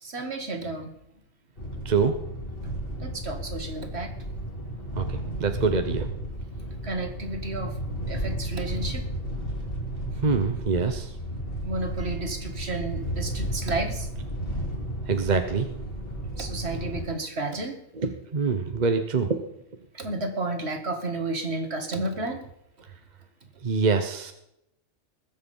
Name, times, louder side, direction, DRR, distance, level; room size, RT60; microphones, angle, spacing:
voice 1, 0.0-0.9 3.0-4.1 6.4-6.5 6.8-7.8 8.1-9.1 11.6-14.1 16.4-17.8 19.9-22.5, right 2 dB, 55° right, 6 dB, 2.0 m, -32 dB
sound 1, 1.6-17.0, right 1 dB, 45° left, 2.9 m, -33 dB
voice 2, 1.8-2.2 5.0-6.1 10.2-11.1 15.1-15.7 18.0-19.4 23.6-24.3, right 4 dB, 35° right, 7 dB, 1.0 m, -25 dB
20.5 x 7.7 x 5.5 m, 0.80 s
omnidirectional pair, 1.3 m